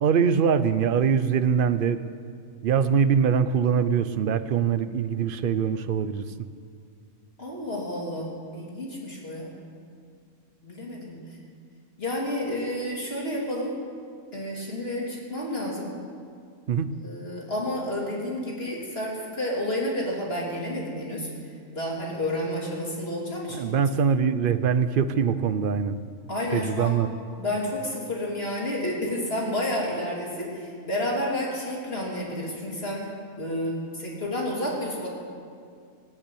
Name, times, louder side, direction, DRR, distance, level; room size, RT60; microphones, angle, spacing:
voice 1, 0.0-2.0 2.6-6.2 16.7-16.9 23.5-26.0 26.5-27.1, right 7 dB, 55° right, 12 dB, 0.6 m, -23 dB
voice 2, 7.4-9.5 10.6-11.2 12.0-13.8 14.3-15.9 17.0-21.3 21.7-23.7 26.3-27.0 27.4-33.1 33.4-35.1, left 1 dB, 40° left, -3 dB, 3.2 m, -30 dB
17.0 x 8.9 x 8.4 m, 2.2 s
omnidirectional pair, 1.5 m